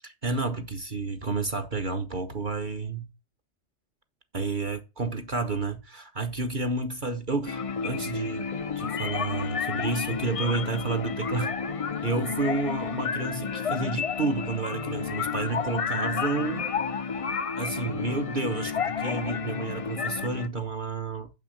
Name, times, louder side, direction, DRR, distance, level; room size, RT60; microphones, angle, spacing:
voice 1, 0.0-3.1 4.3-8.5 8.8-11.5 12.0-16.7 17.6-21.3, right 3 dB, 45° right, 1.2 m, -30 dB
sound 1, 7.5-20.5, left 6 dB, 40° left, 0.5 m, -31 dB
7.4 x 6.2 x 7.8 m
omnidirectional pair, 1.2 m